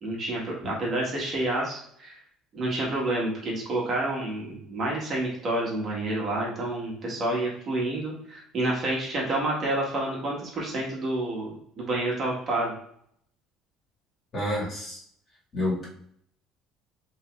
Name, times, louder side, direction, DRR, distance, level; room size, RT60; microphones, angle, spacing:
voice 1, 0.0-2.2 2.5-12.7, right 1 dB, 35° right, -3 dB, 1.5 m, -29 dB
voice 2, 14.3-15.0 15.5-15.9, left 1 dB, 30° left, -5 dB, 2.0 m, -28 dB
6.9 x 3.1 x 2.5 m, 0.67 s
cardioid pair, 145°, 0 cm